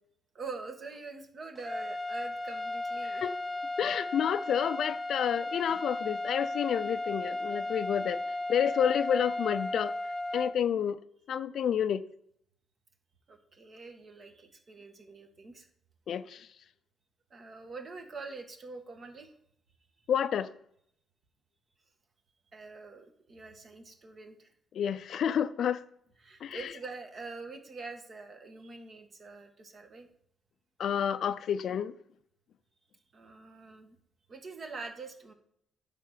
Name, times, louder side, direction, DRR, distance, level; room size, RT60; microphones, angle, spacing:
voice 1, 0.3-3.3 13.3-15.7 17.3-19.3 22.5-24.5 26.2-30.1 33.1-34.0 34.3-35.3, right 4 dB, 45° right, 1.6 m, -45 dB
sound 1, 1.6-10.5, left 2 dB, ahead, 1.2 m, -35 dB
voice 2, 3.8-8.2 8.5-9.9 10.3-11.0 11.3-12.0 16.1-16.4 20.1-20.5 24.8-25.8 26.4-26.6 30.8-31.9, left 8 dB, 65° left, 0.4 m, -29 dB
10.0 x 3.8 x 6.6 m
cardioid pair, 90°, 0 cm